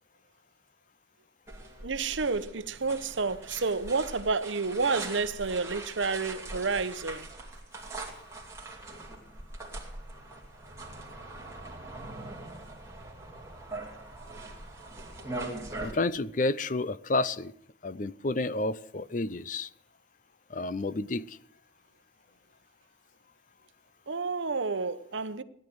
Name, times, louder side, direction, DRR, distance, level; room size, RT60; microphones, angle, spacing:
sound 1, 1.5-15.9, right 2 dB, 15° right, 2.6 m, -42 dB
voice 1, 1.8-7.3 24.1-25.4, right 4 dB, 75° right, 0.9 m, -30 dB
voice 2, 15.8-17.5 17.8-19.7 20.5-21.4, left 2 dB, 40° left, 0.5 m, -30 dB
17.0 x 10.5 x 7.9 m
head